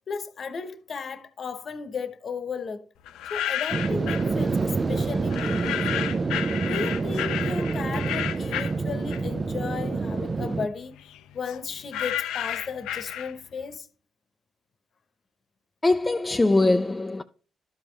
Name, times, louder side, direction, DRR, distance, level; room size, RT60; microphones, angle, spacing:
voice 1, 0.1-2.8 3.3-6.1 6.7-10.9 11.3-13.9, left 5 dB, 55° left, 1.0 m, -35 dB
sound 1, 3.1-4.3 5.3-9.5 9.9-13.6, left 11 dB, 85° left, 0.5 m, -32 dB
sound 2, 3.7-10.7, right 4 dB, 40° right, 0.5 m, -27 dB
voice 2, 15.8-17.2, left 2 dB, 20° left, 0.4 m, -22 dB
12.0 x 5.3 x 3.3 m
supercardioid pair, 60°, 0 cm